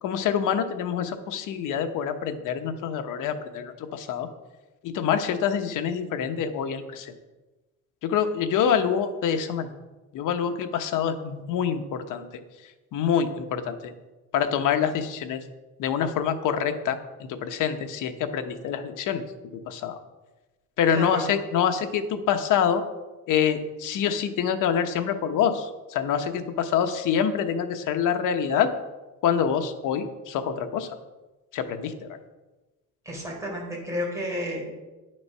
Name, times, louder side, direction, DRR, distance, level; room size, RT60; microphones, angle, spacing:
voice 1, 0.0-4.3 4.8-7.1 8.0-9.7 10.1-12.2 12.9-13.8 14.3-15.4 15.8-19.2 19.5-20.0 20.8-22.8 23.3-28.7 29.2-30.9 31.5-32.2, left 8 dB, 70° left, 7 dB, 1.1 m, -26 dB
voice 2, 20.9-21.2 33.0-34.7, equal, 10° right, -3 dB, 3.8 m, -31 dB
10.5 x 6.6 x 5.6 m, 1.1 s
cardioid pair, 140°, 32 cm